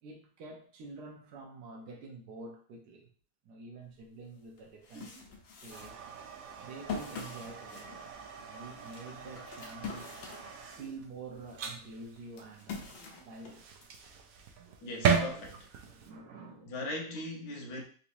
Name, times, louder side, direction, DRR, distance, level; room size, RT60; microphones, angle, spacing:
voice 1, 0.0-3.1 3.4-5.3 5.6-6.0 6.6-8.2 8.5-10.1 10.7-13.6 14.6-14.8 15.2-15.3 15.7-16.8, right 3 dB, 70° right, 1.2 m, -48 dB
sound 1, 4.0-4.1 4.6-11.0 11.4-14.0, left 5 dB, 85° left, 1.6 m, -44 dB
sound 2, 4.9-5.2 6.9-7.3 8.7-9.0 10.8-11.0 12.9-13.3 15.4-15.6, right 6 dB, 50° right, 1.3 m, -56 dB
sound 3, 5.7-16.1, right 7 dB, 85° right, 0.7 m, -37 dB
voice 2, 14.8-15.6 16.6-17.8, left 2 dB, 60° left, 1.2 m, -39 dB
3.8 x 3.1 x 2.6 m
omnidirectional pair, 2.1 m